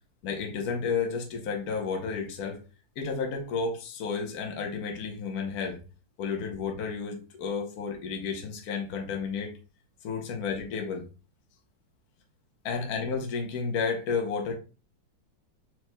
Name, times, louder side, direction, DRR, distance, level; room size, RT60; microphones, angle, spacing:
voice 1, 0.2-2.6 3.0-5.8 6.2-9.5 10.0-11.0 12.6-14.6, left 5 dB, 55° left, 2 dB, 1.3 m, -32 dB
4.6 x 4.6 x 2.2 m, 0.33 s
omnidirectional pair, 2.2 m